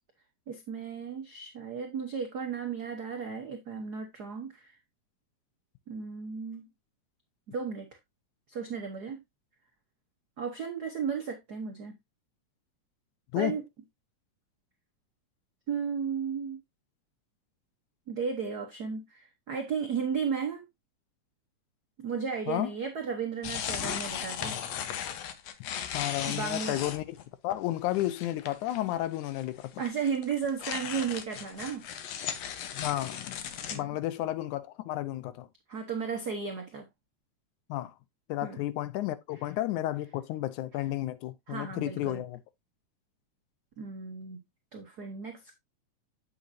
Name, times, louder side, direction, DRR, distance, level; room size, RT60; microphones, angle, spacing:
voice 1, 0.5-4.8 5.9-6.7 7.5-7.9 8.5-9.2 10.4-11.9 13.3-13.6 15.7-16.6 18.1-20.6 22.0-24.6 26.3-26.8 29.8-31.9 33.7-33.9 35.7-36.9 38.4-38.6 41.5-42.2 43.8-44.4 44.7-45.5, right 6 dB, 70° right, 0.9 m, -34 dB
sound 1, 23.4-27.2 27.5-27.6 27.9-29.0 29.2-33.8, left 9 dB, 70° left, 1.9 m, -37 dB
voice 2, 25.9-27.2 27.4-29.8 32.7-33.4 33.7-35.5 37.7-37.9 38.3-42.4, left 15 dB, 85° left, 2.2 m, -32 dB
8.4 x 7.0 x 2.6 m
omnidirectional pair, 3.4 m